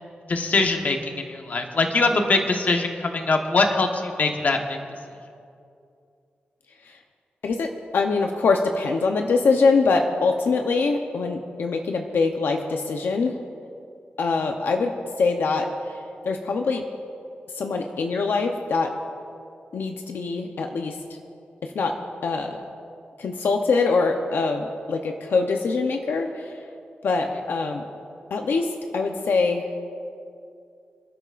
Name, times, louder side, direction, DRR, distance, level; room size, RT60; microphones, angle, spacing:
voice 1, 0.3-4.8, left 3 dB, 50° left, 3 dB, 1.2 m, -22 dB
voice 2, 7.4-13.3 14.2-14.9 15.2-16.8 17.5-18.9 19.7-21.0 21.6-22.0 22.2-22.6 23.2-26.6 27.0-27.8 28.3-29.6, left 4 dB, 85° left, 3 dB, 0.8 m, -23 dB
27.5 x 12.0 x 2.5 m, 2.5 s
wide cardioid pair, 150°, 4 cm